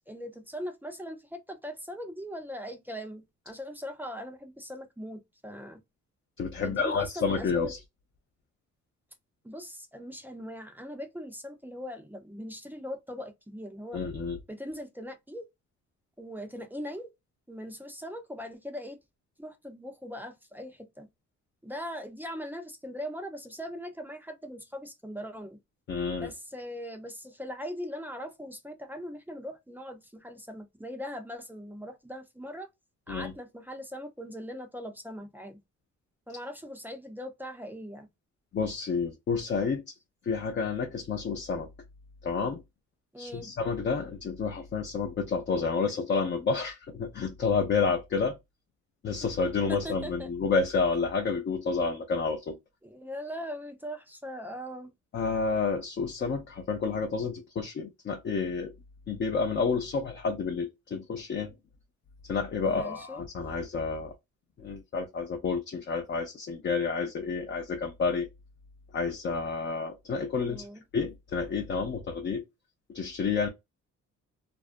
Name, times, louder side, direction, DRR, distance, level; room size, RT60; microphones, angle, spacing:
voice 1, 0.1-5.8 6.6-7.7 9.4-14.0 14.5-15.5 16.2-17.1 17.5-19.0 19.4-21.1 21.6-25.6 26.2-32.7 33.1-35.6 36.3-38.1 43.1-43.5 49.7-50.3 52.8-54.9 62.6-63.2 70.5-70.8, equal, 5° right, 0.5 m, -40 dB
voice 2, 6.4-7.8 13.9-14.4 25.9-26.3 33.1-33.3 38.5-39.9 40.2-41.7 42.2-42.6 43.2-48.4 49.0-52.6 55.1-58.7 59.1-61.5 62.3-64.1 64.6-68.3 68.9-70.7 70.9-72.4 72.9-73.5, left 5 dB, 40° left, 0.5 m, -30 dB
2.5 x 2.0 x 2.4 m
cardioid pair, 90°, 30 cm